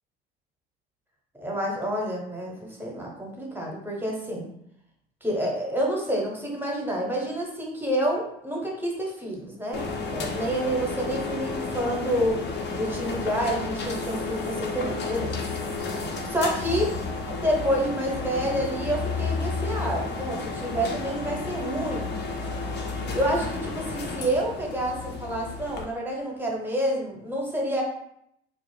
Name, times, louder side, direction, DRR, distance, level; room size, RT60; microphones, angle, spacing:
voice 1, 1.4-4.5 5.2-12.4 12.8-15.4 15.8-17.0 17.2-22.1 22.9-27.8, right 1 dB, 5° right, -1 dB, 0.8 m, -28 dB
sound 1, 9.7-25.8, left 4 dB, 35° left, 0.5 m, -32 dB
2.5 x 2.0 x 3.2 m, 0.74 s
hypercardioid pair, 65°, 32 cm